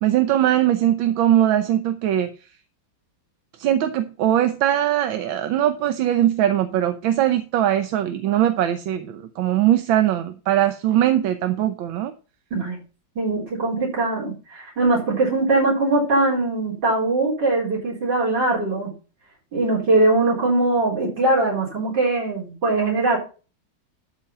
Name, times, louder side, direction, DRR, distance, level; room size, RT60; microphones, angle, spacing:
voice 1, 0.0-2.3 3.6-12.1, right 12 dB, 90° right, 1.6 m, -20 dB
voice 2, 13.2-18.9 19.5-23.2, right 2 dB, 65° right, 4.8 m, -21 dB
12.5 x 5.2 x 5.5 m
omnidirectional pair, 2.1 m